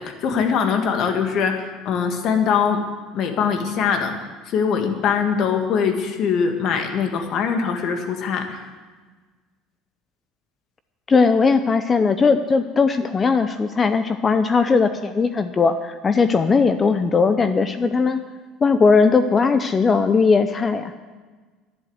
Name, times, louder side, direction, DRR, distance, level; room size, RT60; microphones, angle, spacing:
voice 1, 0.0-2.8 3.1-4.1 4.5-8.7, left 6 dB, 55° left, 5 dB, 2.0 m, -22 dB
voice 2, 11.1-18.2 18.6-20.9, left 4 dB, 25° left, 10 dB, 0.6 m, -18 dB
11.5 x 11.0 x 8.0 m, 1.4 s
supercardioid pair, 115°, 0 cm